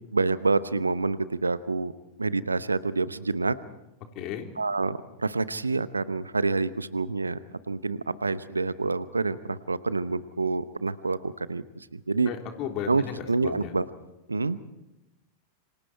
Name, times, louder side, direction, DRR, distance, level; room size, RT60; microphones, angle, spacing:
voice 1, 0.0-1.9 2.2-3.6 4.6-7.4 7.7-11.6 11.9-12.3 12.9-13.0 13.3-13.8 14.3-14.7, right 3 dB, 80° right, 16 dB, 0.9 m, -27 dB
voice 2, 4.1-4.5 12.3-13.7, left 8 dB, 40° left, 3 dB, 3.7 m, -35 dB
28.0 x 25.5 x 4.5 m, 0.93 s
figure-of-eight pair, 90°, 0 cm